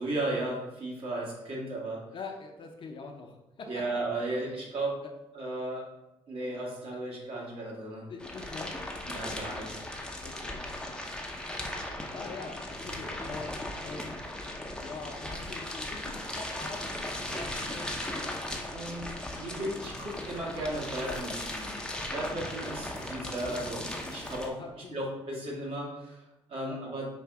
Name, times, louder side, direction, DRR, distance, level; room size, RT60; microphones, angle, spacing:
voice 1, 0.0-2.0 3.7-5.0 5.3-5.9 6.3-8.1 9.1-9.7 18.7-21.8 22.1-27.1, right 1 dB, 55° right, -3 dB, 1.5 m, -35 dB
voice 2, 2.1-3.7 4.3-4.5 8.1-8.7 10.2-10.6 10.9-11.0 12.1-14.4 14.8-18.4 24.6-25.0 26.6-26.8, left 4 dB, 45° left, 3 dB, 0.7 m, -44 dB
sound 1, 8.2-24.5, left 1 dB, 5° left, 0.6 m, -37 dB
4.9 x 2.6 x 3.4 m, 1.0 s
supercardioid pair, 70°, 12 cm